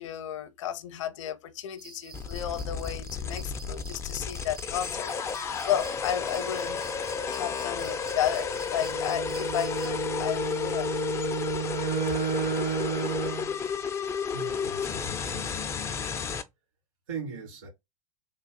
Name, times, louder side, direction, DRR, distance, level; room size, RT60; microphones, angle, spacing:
voice 1, 0.0-6.9 7.3-10.9, left 10 dB, 55° left, 0.6 m, -33 dB
sound 1, 1.8-9.9, right 4 dB, 90° right, 0.9 m, -49 dB
sound 2, 2.1-16.4, left 6 dB, 15° left, 0.4 m, -32 dB
Bowed string instrument, 8.8-13.5, right 9 dB, 25° right, 0.6 m, -32 dB
voice 2, 14.3-15.7 17.1-17.7, right 5 dB, 60° right, 2.3 m, -40 dB
3.4 x 2.3 x 4.1 m
figure-of-eight pair, 95°, 19 cm